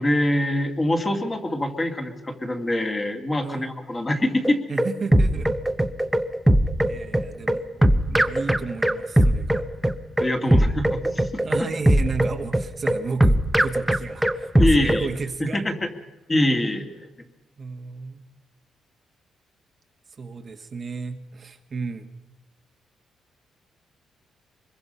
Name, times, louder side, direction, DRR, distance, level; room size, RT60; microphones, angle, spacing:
voice 1, 0.0-4.6 10.2-11.4 14.6-15.1 15.5-15.9 16.3-17.1, left 1 dB, 20° left, 4 dB, 2.3 m, -24 dB
sound 1, 4.4-15.1, right 1 dB, 5° right, 0.9 m, -20 dB
voice 2, 4.7-5.5 6.9-9.6 10.4-10.8 11.4-15.7 17.6-18.2 20.1-22.1, right 4 dB, 30° right, 6 dB, 1.3 m, -33 dB
25.0 x 22.0 x 5.5 m, 1.0 s
cardioid pair, 145°, 0 cm